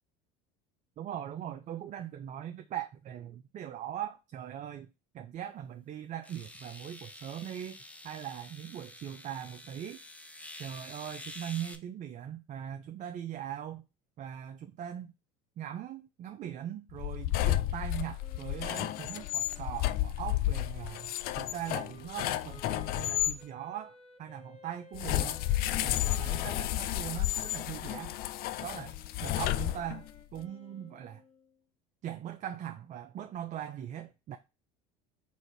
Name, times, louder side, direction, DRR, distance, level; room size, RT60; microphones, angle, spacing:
voice 1, 1.0-4.9 5.1-7.8 8.0-10.0 10.6-13.8 14.2-15.1 15.6-25.4 25.8-28.1 28.6-28.9 29.2-30.1 30.3-31.2 32.0-34.4, right 10 dB, 40° right, 0.5 m, -40 dB
sound 1, 5.4-5.5 6.2-11.8, left 1 dB, 5° left, 0.6 m, -48 dB
sound 2, 16.9-23.4 24.9-30.2, left 14 dB, 55° left, 0.4 m, -32 dB
Wind instrument woodwind instrument, 18.2-31.6, left 6 dB, 35° left, 1.3 m, -55 dB
4.1 x 2.6 x 4.7 m
hypercardioid pair, 80°, 19 cm